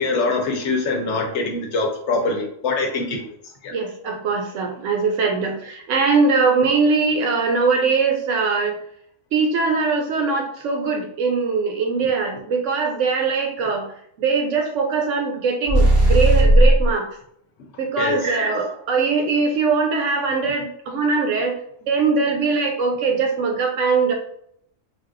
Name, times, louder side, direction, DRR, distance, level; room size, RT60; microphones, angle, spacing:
voice 1, 0.0-3.3 3.6-3.7 18.0-18.3, left 3 dB, 65° left, 2 dB, 0.8 m, -23 dB
voice 2, 3.7-8.7 9.3-13.9 14.2-17.1 17.8-21.6 21.9-24.1, right 4 dB, 70° right, 3 dB, 0.9 m, -21 dB
sound 1, 15.7-16.9, right 1 dB, 25° right, 0.4 m, -14 dB
3.3 x 2.3 x 2.5 m, 0.70 s
omnidirectional pair, 1.4 m